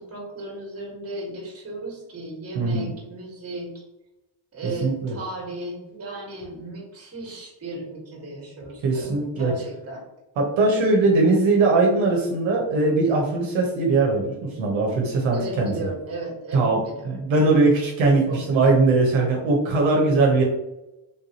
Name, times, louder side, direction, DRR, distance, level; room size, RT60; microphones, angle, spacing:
voice 1, 0.0-3.8 4.5-10.0 11.0-11.1 15.3-17.2 18.3-18.8, right 2 dB, 30° right, -1 dB, 1.4 m, -35 dB
voice 2, 2.5-2.9 4.6-5.1 8.8-9.5 10.4-15.7 16.5-16.8 17.0-20.4, right 3 dB, 70° right, -1 dB, 0.9 m, -20 dB
3.5 x 2.6 x 2.8 m, 0.95 s
cardioid pair, 105°, 48 cm